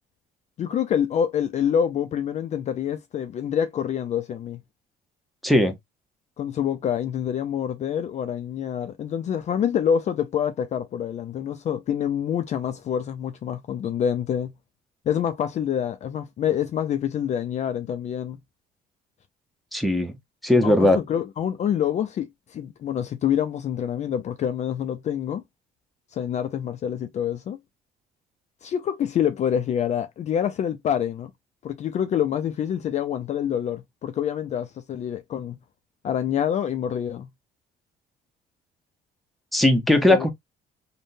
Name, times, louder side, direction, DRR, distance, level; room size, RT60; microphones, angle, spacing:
voice 1, 0.6-4.6 6.4-14.5 15.1-18.4 20.6-25.4 26.1-27.6 28.6-31.3 31.6-35.6 36.0-37.3 39.9-40.3, left 9 dB, 45° left, 0.4 m, -26 dB
voice 2, 5.4-5.7 19.7-20.1 20.4-21.0 39.5-40.3, left 1 dB, ahead, 0.7 m, -18 dB
3.4 x 2.1 x 2.5 m
cardioid pair, 110°, 17 cm